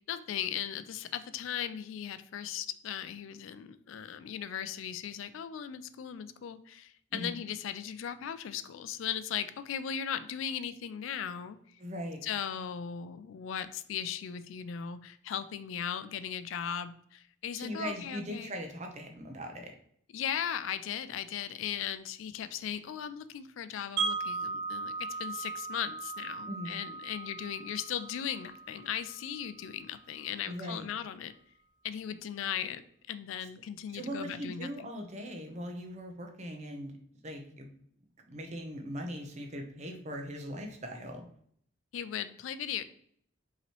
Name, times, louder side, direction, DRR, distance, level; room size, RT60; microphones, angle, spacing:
voice 1, 0.1-11.6 12.2-18.5 20.1-31.3 31.8-32.8 33.1-34.9 41.9-42.8, left 9 dB, 75° left, 13 dB, 0.3 m, -37 dB
voice 2, 11.8-12.2 17.6-19.7 26.5-26.8 30.4-30.9 33.9-36.9 37.2-37.7 38.3-41.3, equal, 35° right, 4 dB, 0.7 m, -40 dB
Wind chime, 24.0-29.9, right 4 dB, 60° right, 1.5 m, -38 dB
5.4 x 3.0 x 3.0 m, 0.64 s
head